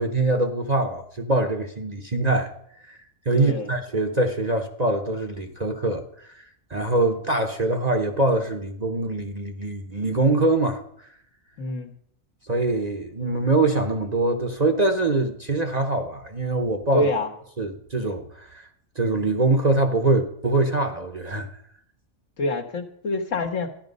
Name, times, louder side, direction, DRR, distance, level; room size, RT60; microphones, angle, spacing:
voice 1, 0.0-2.5 2.9-3.0 3.3-6.0 6.7-10.8 12.5-17.1 17.6-18.7 19.0-21.5, right 2 dB, 35° right, 0.9 m, -23 dB
voice 2, 3.3-3.7 11.6-11.9 16.9-17.3 22.4-23.7, left 2 dB, 65° left, 1.7 m, -26 dB
13.0 x 10.5 x 5.3 m
omnidirectional pair, 1.4 m